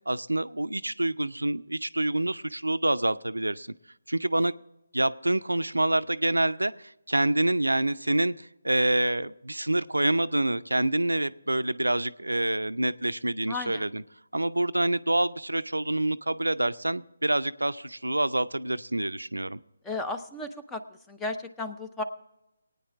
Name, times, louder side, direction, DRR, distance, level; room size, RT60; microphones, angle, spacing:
voice 1, 0.1-3.7 4.1-4.5 4.9-14.0 14.3-19.6, right 1 dB, 90° right, 13 dB, 0.5 m, -27 dB
voice 2, 13.5-13.9 19.8-20.8 21.1-22.0, left 2 dB, 5° left, 6 dB, 0.7 m, -34 dB
19.5 x 9.5 x 3.5 m, 0.89 s
figure-of-eight pair, 150°, 0 cm